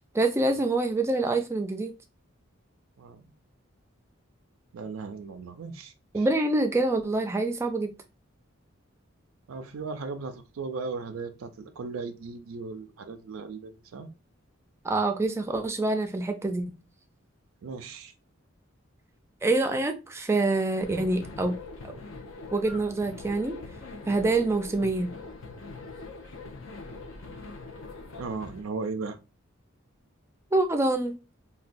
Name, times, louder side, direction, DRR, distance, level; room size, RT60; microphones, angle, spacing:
voice 1, 0.0-1.9 6.1-7.9 14.8-16.7 19.4-21.6 21.8-21.9 22.5-23.5 24.1-25.1 30.5-31.2, right 2 dB, 15° right, 0.3 m, -26 dB
voice 2, 4.7-6.3 9.5-14.1 17.6-18.1 28.2-29.2, right 4 dB, 85° right, 0.4 m, -37 dB
sound 1, 20.8-28.6, left 3 dB, 75° left, 0.6 m, -42 dB
4.0 x 2.2 x 2.5 m
head